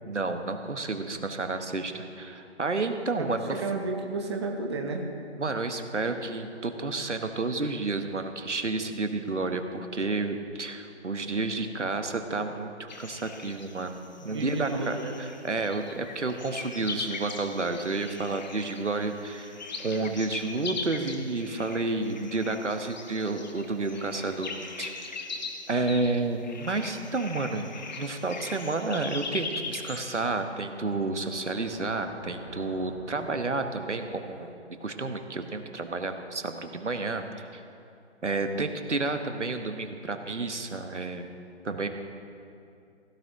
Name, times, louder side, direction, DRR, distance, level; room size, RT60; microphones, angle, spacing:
voice 1, 0.0-3.6 5.4-24.5 24.8-25.1 25.7-27.7 28.0-34.5 34.8-37.6 38.2-41.3 41.6-41.9, right 3 dB, 85° right, 7 dB, 1.2 m, -31 dB
voice 2, 3.2-5.0 14.2-15.2, right 3 dB, 25° right, 2 dB, 0.8 m, -32 dB
sound 1, 12.9-30.2, left 4 dB, 40° left, 1.1 m, -40 dB
sound 2, 31.1-36.2, equal, 15° left, 0.5 m, -48 dB
16.5 x 11.0 x 3.0 m, 2.6 s
figure-of-eight pair, 150°, 35 cm